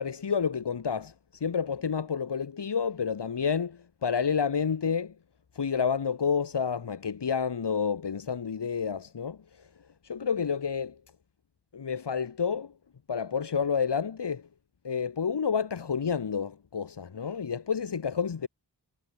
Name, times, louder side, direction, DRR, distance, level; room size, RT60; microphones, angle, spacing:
voice 1, 0.0-5.1 5.6-9.4 10.0-11.0 11.7-12.7 13.1-14.4 14.8-18.5, left 6 dB, 75° left, 7.5 m, -29 dB
wide cardioid pair, 135°, 42 cm